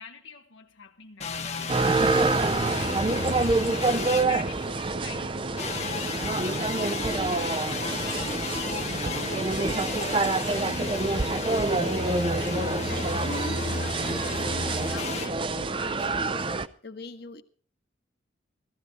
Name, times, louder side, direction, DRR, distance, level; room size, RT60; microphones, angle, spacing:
voice 1, 0.0-3.6 4.1-5.5 5.7-8.3 8.6-11.1 13.3-13.5, left 6 dB, 75° left, 1.1 m, -47 dB
sound 1, 1.2-4.9 5.6-15.3, left 4 dB, 35° left, 1.1 m, -34 dB
sound 2, 1.7-16.7, right 3 dB, 25° right, 0.6 m, -27 dB
voice 2, 12.4-17.4, left 2 dB, 55° left, 1.4 m, -41 dB
16.5 x 14.5 x 4.2 m
head